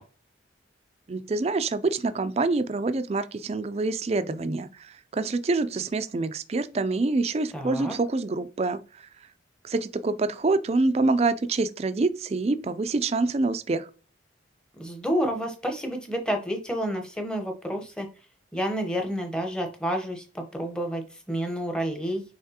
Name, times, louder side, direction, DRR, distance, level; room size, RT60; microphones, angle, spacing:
voice 1, 1.1-9.1 9.6-13.9, right 3 dB, 35° right, 0.4 m, -26 dB
voice 2, 7.5-7.9 14.7-18.1 18.5-22.2, equal, 5° left, 0.8 m, -29 dB
5.8 x 3.2 x 2.8 m
head